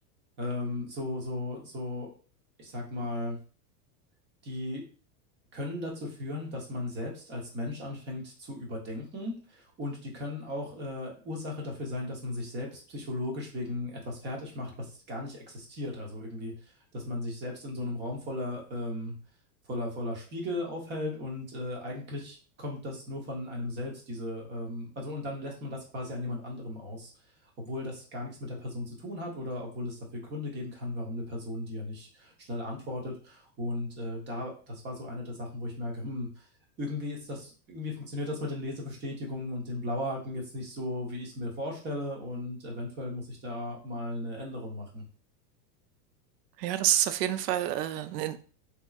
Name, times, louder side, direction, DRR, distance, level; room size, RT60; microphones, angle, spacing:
voice 1, 0.4-2.1 2.6-3.4 4.4-4.8 5.5-19.1 19.7-27.1 27.6-36.5 36.8-45.0, left 1 dB, 20° right, 0.9 m, -36 dB
voice 2, 46.6-48.4, right 12 dB, 80° right, 0.6 m, -28 dB
3.5 x 3.0 x 2.4 m
supercardioid pair, 160°, 48 cm